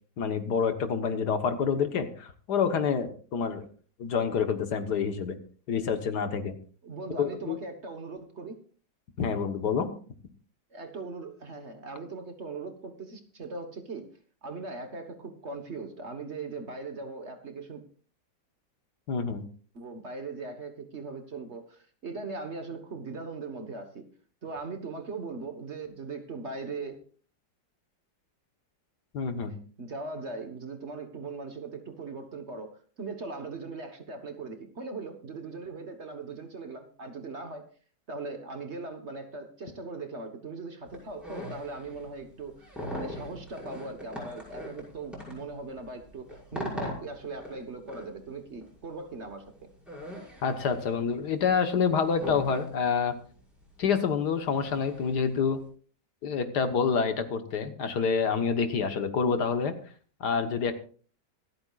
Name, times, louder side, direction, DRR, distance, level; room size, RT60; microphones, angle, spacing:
voice 1, 0.2-3.7 4.0-5.4 5.7-6.5 7.2-7.6 9.2-9.9 19.1-19.4 29.1-29.5 50.4-53.1 53.8-55.6 56.2-59.7 60.2-60.7, left 6 dB, 65° left, 8 dB, 1.7 m, -27 dB
voice 2, 6.8-8.6 10.7-14.1 14.4-17.8 19.7-24.0 24.4-27.0 29.4-37.7 38.1-49.7, right 3 dB, 40° right, 6 dB, 1.4 m, -39 dB
sound 1, 40.9-55.6, left 1 dB, ahead, 5.9 m, -42 dB
25.5 x 8.8 x 2.4 m, 0.42 s
omnidirectional pair, 1.9 m